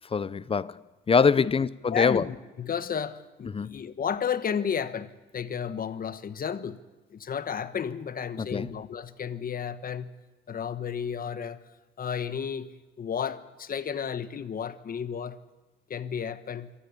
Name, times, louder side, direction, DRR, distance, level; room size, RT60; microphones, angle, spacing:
voice 1, 0.1-2.3 3.5-3.9 8.4-8.7, left 5 dB, 30° left, 0.7 m, -24 dB
voice 2, 1.9-6.8 7.1-10.1 10.5-11.6 12.0-12.7 13.0-15.4 15.9-16.7, left 7 dB, 45° left, 1.2 m, -32 dB
23.5 x 14.0 x 8.4 m
cardioid pair, 90°, 20 cm